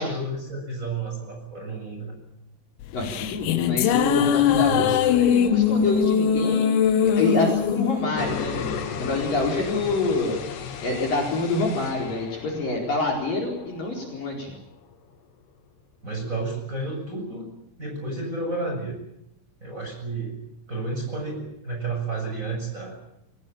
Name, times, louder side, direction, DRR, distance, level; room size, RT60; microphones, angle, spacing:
voice 1, 0.0-2.2 4.3-4.8 16.0-17.5 17.8-19.0 19.6-20.4 20.7-23.0, right 3 dB, 15° right, 1 dB, 7.2 m, -31 dB
sound 1, 2.8-9.4, left 8 dB, 90° left, 4.0 m, -22 dB
voice 2, 2.9-10.4 10.8-14.5, left 3 dB, 45° left, 1 dB, 5.9 m, -26 dB
sound 2, 8.2-15.0, left 7 dB, 60° left, 3.8 m, -36 dB
25.0 x 19.0 x 8.9 m, 0.78 s
omnidirectional pair, 5.9 m